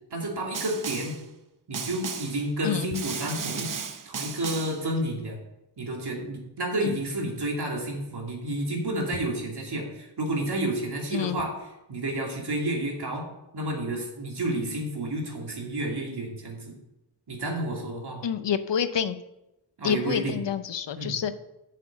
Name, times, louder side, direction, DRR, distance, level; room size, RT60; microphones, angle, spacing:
voice 1, 0.1-1.2 1.7-3.7 4.1-5.4 5.8-11.6 11.9-13.3 13.5-16.8 17.3-18.3 19.8-20.4 21.0-21.1, right 1 dB, 65° right, 0 dB, 2.5 m, -30 dB
Snare drum, 0.5-1.2 1.7-2.4 2.9-4.8, right 6 dB, 50° right, 0.8 m, -35 dB
voice 2, 18.2-19.2 19.8-21.3, left 8 dB, 85° left, 12 dB, 0.7 m, -28 dB
7.8 x 6.5 x 7.3 m, 0.93 s
wide cardioid pair, 130°, 42 cm